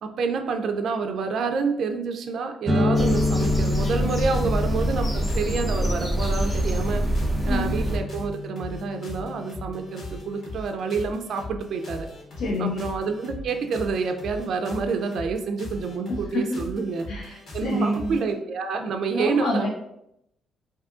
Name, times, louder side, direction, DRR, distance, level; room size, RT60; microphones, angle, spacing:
voice 1, 0.0-7.1 7.5-12.1 12.6-19.7, right 4 dB, 65° right, 5 dB, 0.3 m, -28 dB
sound 1, 2.7-10.3, left 2 dB, 30° right, 0.7 m, -29 dB
sound 2, 2.9-18.3, left 1 dB, 55° left, 1.2 m, -39 dB
sound 3, 2.9-8.0, right 1 dB, 15° left, 0.7 m, -25 dB
voice 2, 7.4-7.8 12.4-12.8 16.1-16.7 17.1-18.2 19.1-19.7, left 1 dB, 75° left, 0 dB, 0.4 m, -28 dB
2.6 x 2.4 x 3.5 m, 0.79 s
cardioid pair, 90°, 0 cm